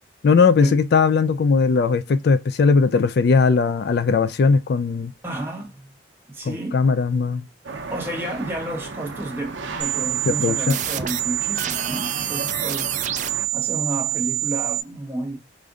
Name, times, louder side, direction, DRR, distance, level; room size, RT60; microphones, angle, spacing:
voice 1, 0.2-5.1 6.5-7.4 10.3-10.8, left 4 dB, 55° left, 0.3 m, -18 dB
voice 2, 5.2-5.9 6.3-6.8 7.9-13.0 13.5-15.4, right 1 dB, 10° right, 1.2 m, -31 dB
sound 1, 7.6-13.5, right 4 dB, 85° right, 0.7 m, -35 dB
sound 2, 9.8-14.8, right 13 dB, 40° right, 0.4 m, -26 dB
5.0 x 2.6 x 2.3 m
head